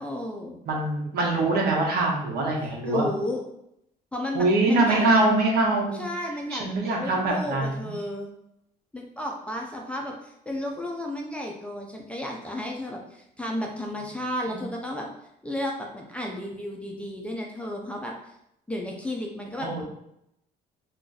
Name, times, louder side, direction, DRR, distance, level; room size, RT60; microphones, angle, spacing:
voice 1, 0.0-0.6 2.8-3.4 4.1-5.2 6.0-8.3 8.9-15.1 15.4-18.1 18.7-19.8, left 1 dB, 5° left, 0 dB, 0.5 m, -33 dB
voice 2, 0.7-3.1 4.3-6.0 6.5-7.9 14.5-14.6 19.6-19.8, right 2 dB, 70° right, -1 dB, 1.0 m, -23 dB
2.5 x 2.4 x 3.9 m, 0.78 s
cardioid pair, 110°, 17 cm